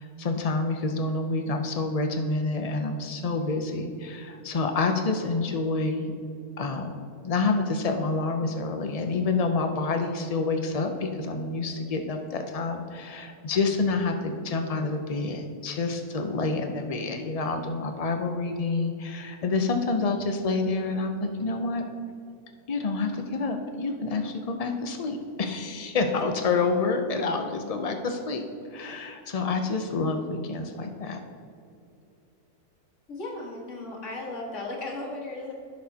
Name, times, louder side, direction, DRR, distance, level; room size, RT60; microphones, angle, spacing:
voice 1, 0.0-6.1 6.6-6.9 7.2-21.9 22.7-28.4 28.7-31.2, left 3 dB, 75° left, 5 dB, 0.3 m, -28 dB
voice 2, 33.1-35.5, left 2 dB, 55° left, -2 dB, 1.9 m, -36 dB
15.5 x 6.1 x 2.8 m, 2.5 s
omnidirectional pair, 1.6 m